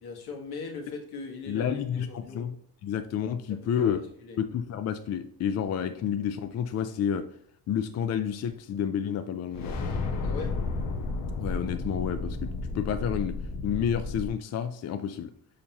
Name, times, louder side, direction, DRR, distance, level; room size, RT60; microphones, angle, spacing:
voice 1, 0.0-2.4 3.5-3.9 4.2-4.4 10.2-10.6, left 4 dB, 80° left, 1 dB, 1.6 m, -40 dB
voice 2, 1.5-2.6 2.8-4.0 4.4-7.3 7.7-9.8 11.4-13.4 13.6-15.3, left 8 dB, 45° left, 8 dB, 0.4 m, -30 dB
sound 1, 9.5-14.3, left 3 dB, 60° left, 1.0 m, -32 dB
6.6 x 5.4 x 2.9 m, 0.67 s
cardioid pair, 155°, 37 cm